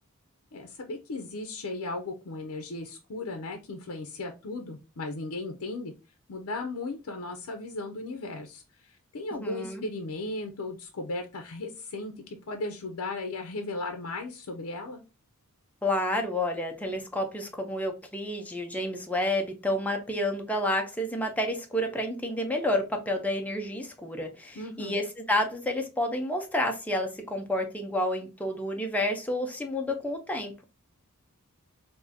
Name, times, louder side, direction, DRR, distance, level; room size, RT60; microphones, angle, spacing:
voice 1, 0.5-5.9 6.3-15.0 24.6-25.0, left 2 dB, 80° left, 4 dB, 0.5 m, -36 dB
voice 2, 9.4-9.8 15.8-30.6, left 1 dB, 5° left, 3 dB, 0.6 m, -30 dB
3.5 x 2.6 x 2.6 m, 0.29 s
head